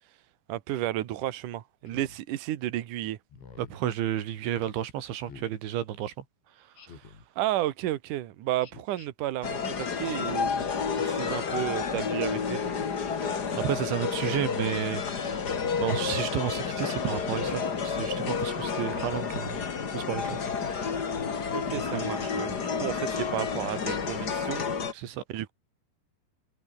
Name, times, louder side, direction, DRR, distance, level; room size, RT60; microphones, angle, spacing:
voice 1, 0.5-3.2 7.4-10.5 10.9-12.6 21.5-24.6 25.3-25.5, right 14 dB, 65° right, 2.2 m, -32 dB
Speech synthesizer, 1.9-2.2 3.3-3.8 5.3-5.6 6.8-7.3 8.6-9.1 10.4-10.9 12.2-12.7 14.0-14.4 15.6-16.0 17.3-17.7 18.9-19.5, left 5 dB, 80° left, 8.9 m, -47 dB
voice 2, 3.6-6.2 6.6-7.0 13.2-19.6 19.9-21.0 21.7-22.3 24.9-25.2, right 11 dB, 85° right, 4.6 m, -32 dB
sound 1, 9.4-24.9, left 6 dB, 60° left, 1.0 m, -30 dB
omnidirectional pair, 5.2 m